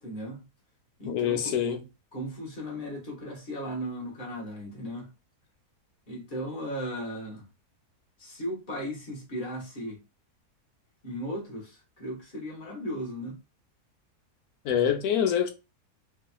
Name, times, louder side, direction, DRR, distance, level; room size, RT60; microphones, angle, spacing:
voice 1, 0.0-0.4 1.0-1.6 2.1-5.1 6.1-7.5 8.2-10.0 11.0-13.4, equal, 35° left, 1.0 m, -36 dB
voice 2, 1.0-1.8 14.6-15.5, left 9 dB, 75° left, 1.0 m, -25 dB
3.1 x 2.7 x 2.3 m
omnidirectional pair, 1.7 m